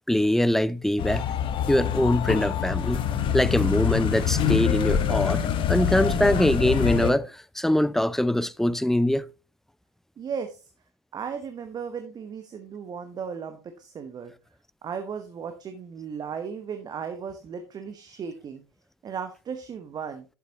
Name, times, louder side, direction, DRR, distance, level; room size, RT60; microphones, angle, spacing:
voice 1, 0.1-1.3 1.7-3.1 3.3-5.4 5.7-9.3, left 1 dB, ahead, 0.3 m, -23 dB
sound 1, 1.0-7.1, left 9 dB, 35° left, 1.2 m, -25 dB
voice 2, 10.2-10.7 11.1-14.3 14.8-18.6 19.0-20.2, right 6 dB, 30° right, 1.1 m, -36 dB
11.0 x 7.3 x 2.9 m
hypercardioid pair, 85°, 14 cm